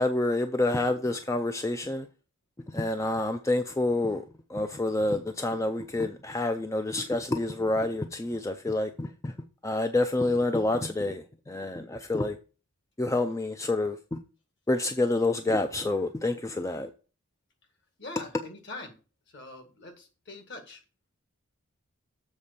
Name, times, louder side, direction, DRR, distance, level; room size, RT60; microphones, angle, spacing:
voice 1, 0.0-2.1 2.7-4.2 4.5-9.3 9.6-12.4 13.0-14.2 14.7-16.9, left 2 dB, 15° left, 0.4 m, -28 dB
voice 2, 18.0-18.9 19.3-20.8, left 2 dB, 50° left, 1.7 m, -43 dB
7.3 x 4.2 x 6.7 m
head